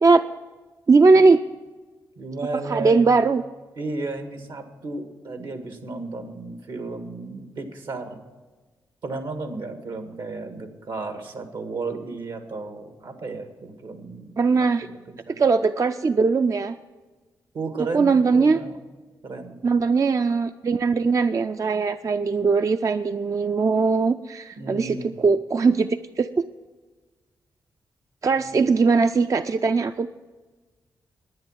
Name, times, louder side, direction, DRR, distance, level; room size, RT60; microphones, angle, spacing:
voice 1, 0.9-1.4 2.7-3.4 14.4-14.9 15.4-16.7 17.9-18.6 19.6-26.3 28.2-30.1, right 4 dB, 40° right, 9 dB, 0.4 m, -20 dB
voice 2, 2.2-3.1 3.8-8.2 9.0-14.4 14.8-15.0 15.3-15.4 17.5-18.8 19.2-19.6 24.6-25.2, right 3 dB, 75° right, 7 dB, 1.6 m, -33 dB
10.5 x 9.6 x 7.3 m, 1.3 s
supercardioid pair, 50°, 8 cm